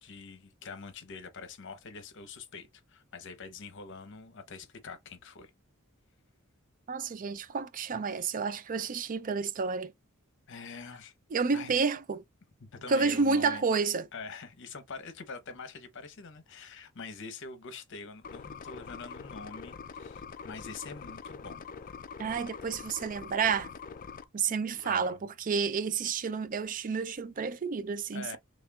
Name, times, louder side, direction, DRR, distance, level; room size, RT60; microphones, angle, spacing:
voice 1, 0.0-5.5 10.5-11.1 11.5-11.8 12.6-13.6 14.1-21.7 24.7-25.2 28.1-28.4, left 4 dB, 60° left, 0.9 m, -45 dB
voice 2, 6.9-9.9 11.3-12.2 12.9-14.1 22.2-23.7 24.3-28.4, right 5 dB, 40° right, 0.4 m, -30 dB
sound 1, 18.2-24.2, left 5 dB, 40° left, 0.4 m, -44 dB
4.3 x 3.2 x 2.3 m
head